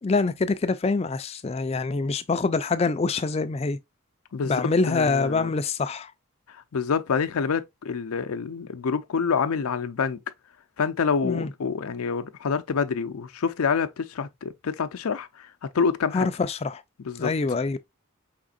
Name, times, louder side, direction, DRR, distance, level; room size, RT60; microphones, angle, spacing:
voice 1, 0.0-3.8 4.5-6.1 11.2-11.5 16.1-16.8 17.2-17.8, left 4 dB, 30° left, 0.3 m, -25 dB
voice 2, 4.3-5.6 6.5-10.2 10.8-16.3 17.0-17.3, left 5 dB, 85° left, 0.5 m, -27 dB
4.9 x 3.7 x 2.4 m
head